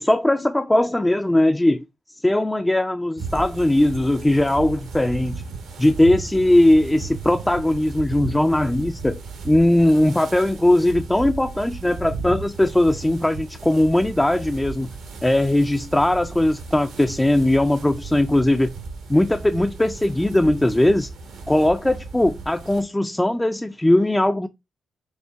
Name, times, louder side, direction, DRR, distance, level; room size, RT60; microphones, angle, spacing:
voice 1, 0.0-5.3 5.8-9.2 9.4-14.9 15.2-18.7 19.1-21.1 21.5-24.5, left 1 dB, 10° left, 0.3 m, -19 dB
sound 1, 3.2-22.8, right 4 dB, 75° right, 1.1 m, -35 dB
5.3 x 2.1 x 3.4 m
cardioid pair, 90°, 0 cm